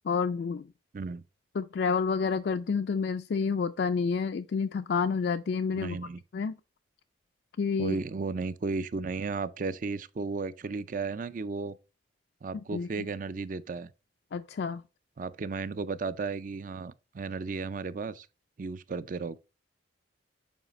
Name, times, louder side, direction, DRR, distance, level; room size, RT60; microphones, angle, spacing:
voice 1, 0.0-0.7 1.5-6.0 6.3-6.6 7.6-8.0 12.5-13.1 14.3-14.8, left 5 dB, 60° left, 0.3 m, -29 dB
voice 2, 5.7-6.2 7.8-11.8 12.4-13.9 15.2-18.3 18.6-19.4, right 4 dB, 45° right, 0.4 m, -34 dB
7.3 x 4.9 x 3.1 m
head